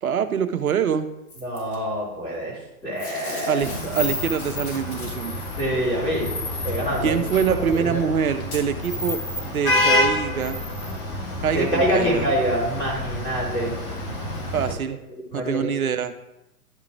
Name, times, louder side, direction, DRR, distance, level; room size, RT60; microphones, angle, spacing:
voice 1, 0.0-1.1 3.5-5.4 7.0-10.6 11.4-12.3 14.5-15.0 15.3-16.1, right 7 dB, 65° right, 10 dB, 0.8 m, -25 dB
Packing tape duct tape / Tearing, 1.3-1.8 3.0-5.5 6.7-6.8 7.7-7.8 8.4-8.6 9.3-9.4, left 1 dB, 60° left, 3.1 m, -37 dB
voice 2, 1.4-2.6 2.8-3.6 5.6-6.3 6.6-7.2 7.4-8.1 11.5-13.7 15.1-15.7, equal, 10° left, -8 dB, 2.6 m, -25 dB
Vehicle horn car horn honking / Traffic noise roadway noise, 3.6-14.7, left 1 dB, 35° left, 1.5 m, -28 dB
11.0 x 3.8 x 4.6 m, 0.90 s
figure-of-eight pair, 115°, 46 cm